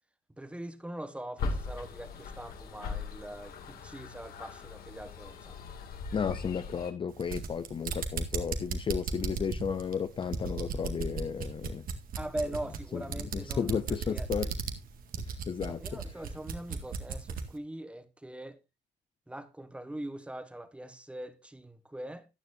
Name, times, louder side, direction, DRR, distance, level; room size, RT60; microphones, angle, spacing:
voice 1, 0.3-5.7 12.1-14.5 15.7-18.6 19.3-22.3, right 1 dB, 5° right, 1.2 m, -42 dB
sound 1, 1.4-6.9, left 4 dB, 60° left, 2.3 m, -39 dB
voice 2, 6.1-11.8 12.9-13.0 13.3-14.5 15.5-15.8, left 7 dB, 30° left, 0.6 m, -33 dB
sound 2, 7.1-17.5, right 5 dB, 60° right, 1.9 m, -36 dB
14.5 x 9.7 x 2.6 m
cardioid pair, 110°, 17 cm